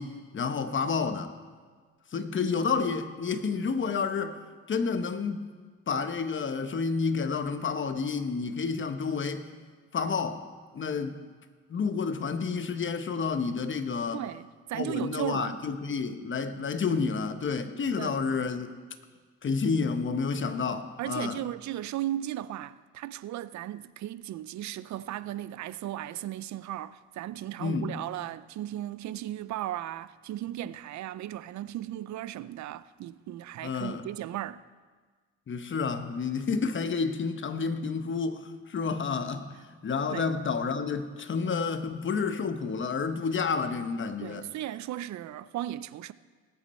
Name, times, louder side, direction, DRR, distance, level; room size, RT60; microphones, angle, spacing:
voice 1, 0.0-1.3 2.1-4.4 4.7-5.5 5.9-9.5 9.9-10.4 10.7-11.2 11.7-14.2 14.7-18.7 19.4-21.4 27.6-27.9 33.6-34.0 35.5-44.5, left 5 dB, 40° left, 1.0 m, -30 dB
voice 2, 14.1-15.6 18.0-18.2 21.0-34.6 40.1-40.3 44.2-46.1, right 13 dB, 65° right, 0.5 m, -36 dB
19.5 x 8.4 x 4.3 m
cardioid pair, 90°, 30 cm